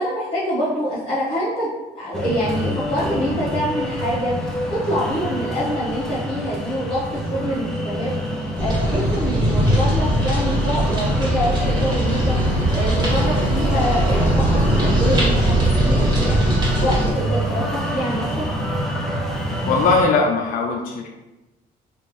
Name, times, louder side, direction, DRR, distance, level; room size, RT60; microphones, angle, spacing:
voice 1, 0.0-1.7 1.9-14.4 14.8-16.5 16.8-18.4, equal, 30° left, -11 dB, 1.1 m, -25 dB
sound 1, 2.1-20.0, equal, 5° left, 0.5 m, -27 dB
sound 2, 8.6-17.1, right 1 dB, 25° right, 1.5 m, -20 dB
voice 2, 19.7-21.1, left 4 dB, 55° left, 2 dB, 0.4 m, -19 dB
3.2 x 2.5 x 3.1 m, 1.1 s
cardioid pair, 110°, 17 cm